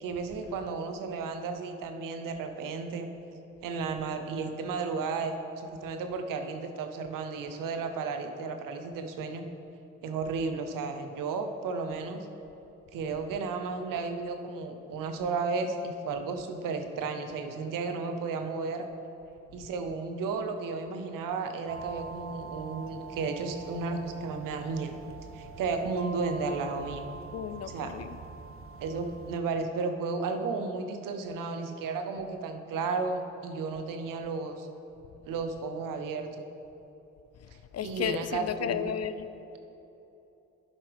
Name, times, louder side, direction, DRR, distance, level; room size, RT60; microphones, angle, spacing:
voice 1, 0.0-3.1 3.6-9.4 10.0-12.3 12.9-18.9 19.5-24.9 25.3-27.1 27.7-27.9 28.8-34.7 35.3-36.3 37.8-38.9, right 4 dB, 80° right, 7 dB, 0.8 m, -33 dB
sound 1, 21.7-29.4, right 5 dB, 45° right, 0.5 m, -44 dB
voice 2, 27.3-28.1 37.7-39.3, left 8 dB, 50° left, 12 dB, 0.5 m, -33 dB
10.5 x 7.4 x 3.5 m, 3.0 s
supercardioid pair, 60°, 32 cm